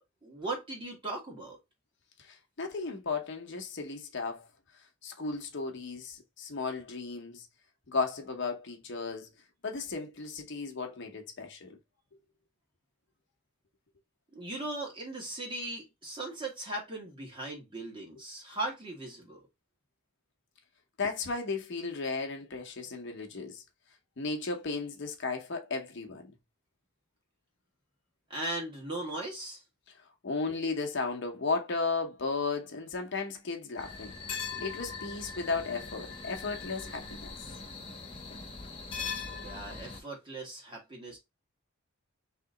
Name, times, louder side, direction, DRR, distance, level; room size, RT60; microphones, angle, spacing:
voice 1, 0.2-1.6 14.3-19.4 28.3-29.6 39.3-41.2, right 2 dB, 25° right, 1.4 m, -38 dB
voice 2, 2.2-4.5 5.0-7.5 7.9-9.3 9.6-11.8 21.0-23.6 24.2-26.3 30.2-37.3, left 4 dB, 55° left, 0.8 m, -35 dB
sound 1, 33.8-40.0, left 5 dB, 25° left, 1.0 m, -41 dB
3.2 x 2.9 x 3.7 m
head